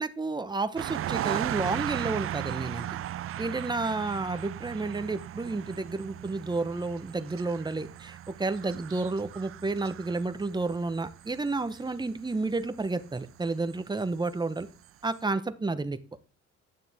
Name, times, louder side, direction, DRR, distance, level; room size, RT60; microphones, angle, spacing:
voice 1, 0.0-2.9 3.4-14.7 15.0-16.0, right 3 dB, 15° right, 11 dB, 0.8 m, -31 dB
sound 1, 0.8-13.2 13.7-13.8, right 12 dB, 50° right, 0.4 m, -37 dB
9.6 x 6.7 x 3.4 m, 0.38 s
cardioid pair, 90°, 30 cm